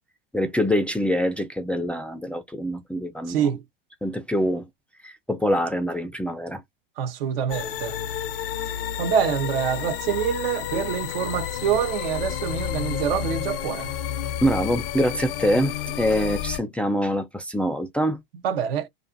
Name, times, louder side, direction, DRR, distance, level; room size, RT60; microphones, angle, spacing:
voice 1, 0.3-3.4 4.0-4.6 5.0-6.6 14.4-18.2, equal, 5° left, 0.4 m, -25 dB
voice 2, 3.3-3.6 7.0-8.0 9.0-13.9 18.4-18.9, right 8 dB, 75° right, 0.8 m, -26 dB
sound 1, 7.5-16.6, left 10 dB, 70° left, 0.6 m, -30 dB
2.5 x 2.5 x 2.4 m
hypercardioid pair, 105°, 29 cm